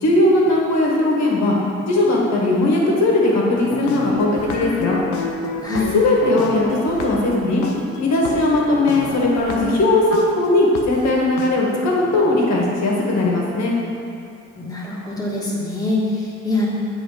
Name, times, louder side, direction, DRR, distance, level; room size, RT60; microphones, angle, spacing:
voice 1, 0.0-1.5 1.9-5.0 5.9-7.6 8.0-13.7, left 2 dB, 60° left, -3 dB, 1.7 m, -18 dB
sound 1, 3.5-10.2 10.7-10.8 11.4-11.5, left 4 dB, 90° left, 0.8 m, -28 dB
voice 2, 5.6-5.9 14.6-16.7, left 2 dB, 10° left, -6 dB, 1.8 m, -24 dB
7.8 x 3.8 x 5.1 m, 2.4 s
cardioid pair, 90°, 30 cm